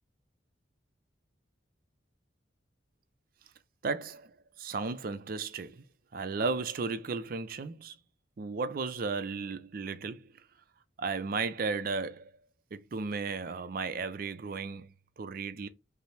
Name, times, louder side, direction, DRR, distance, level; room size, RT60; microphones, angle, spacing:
voice 1, 3.8-5.8 6.1-8.0 8.4-10.3 11.0-12.3 12.7-15.7, right 4 dB, 50° right, 0.4 m, -35 dB
5.4 x 2.0 x 3.2 m
head